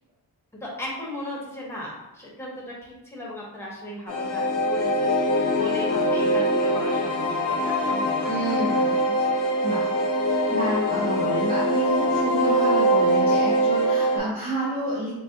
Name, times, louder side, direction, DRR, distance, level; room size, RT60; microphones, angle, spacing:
voice 1, 0.6-8.9, left 1 dB, 5° left, -4 dB, 0.9 m, -37 dB
sound 1, 4.1-14.2, equal, 55° left, 0.7 m, -23 dB
voice 2, 8.3-9.2 9.6-9.9 10.5-15.1, right 1 dB, 25° right, -8 dB, 0.7 m, -29 dB
4.7 x 2.2 x 2.6 m, 0.98 s
wide cardioid pair, 135°, 39 cm